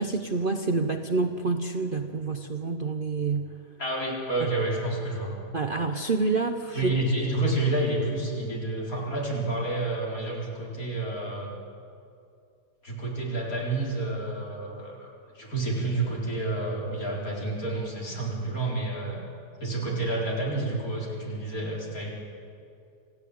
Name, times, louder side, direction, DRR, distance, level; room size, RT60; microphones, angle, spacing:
voice 1, 0.0-3.5 4.4-4.5 5.5-6.9, right 3 dB, 40° right, 6 dB, 0.8 m, -27 dB
voice 2, 3.8-5.3 6.7-11.5 12.8-15.1 15.3-19.2 19.6-22.1, right 2 dB, 55° left, -3 dB, 4.8 m, -29 dB
27.5 x 16.0 x 8.6 m, 2.5 s
omnidirectional pair, 1.8 m